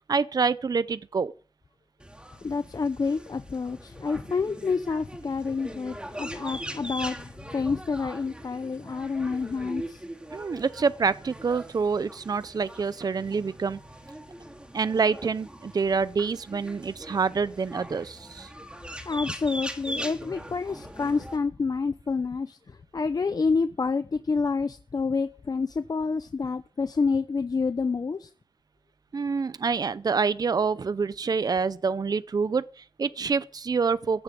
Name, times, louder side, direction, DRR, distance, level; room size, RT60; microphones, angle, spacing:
voice 1, 0.1-1.3 10.3-13.8 14.7-18.5 29.1-34.2, right 5 dB, 55° right, 0.5 m, -27 dB
sound 1, 2.0-21.4, right 1 dB, 15° right, 2.6 m, -41 dB
voice 2, 2.4-10.0 19.1-28.3, left 4 dB, 55° left, 0.7 m, -28 dB
15.0 x 7.0 x 9.2 m
wide cardioid pair, 90°, 8 cm